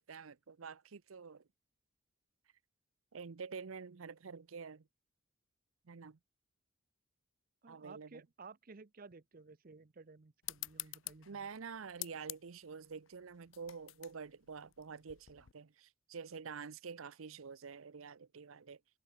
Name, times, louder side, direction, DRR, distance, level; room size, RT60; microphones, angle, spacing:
voice 1, 0.0-1.4 3.1-4.9 5.9-6.2 7.7-8.2 11.3-18.8, right 5 dB, 90° right, 0.7 m, -48 dB
voice 2, 7.6-11.5, right 4 dB, 45° right, 0.7 m, -55 dB
sound 1, 10.4-15.5, left 18 dB, 70° left, 0.6 m, -48 dB
head